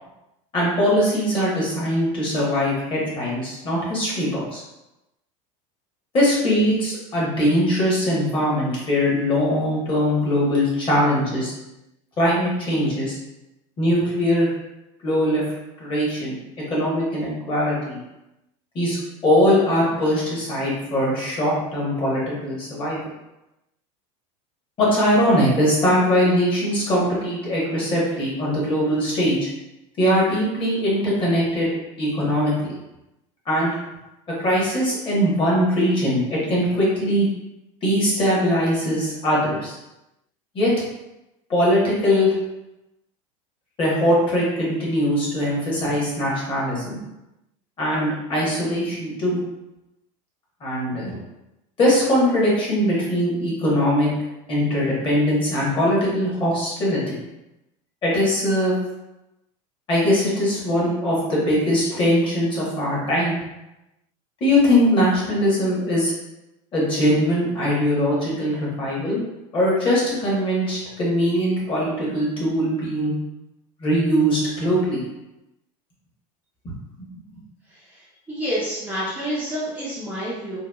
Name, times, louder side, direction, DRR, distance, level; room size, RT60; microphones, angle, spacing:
voice 1, 0.5-4.6 6.1-11.5 12.2-13.2 13.8-14.5 15.0-15.4 15.8-16.4 16.7-18.0 18.7-19.0 19.2-23.0 24.8-29.5 30.0-31.7 32.0-32.7 33.5-33.7 34.4-37.3 37.8-39.8 40.5-40.7 41.5-42.3 43.8-47.0 47.8-49.4 50.6-51.2 51.8-54.1 54.5-57.2 58.0-58.8 59.9-63.4 64.4-66.1 66.7-69.2 69.5-73.1 73.8-75.0 77.0-77.1, equal, 30° left, -5 dB, 1.0 m, -21 dB
voice 2, 78.3-80.6, equal, 10° right, -9 dB, 0.4 m, -28 dB
2.9 x 2.2 x 2.2 m, 0.94 s
supercardioid pair, 145°, 17 cm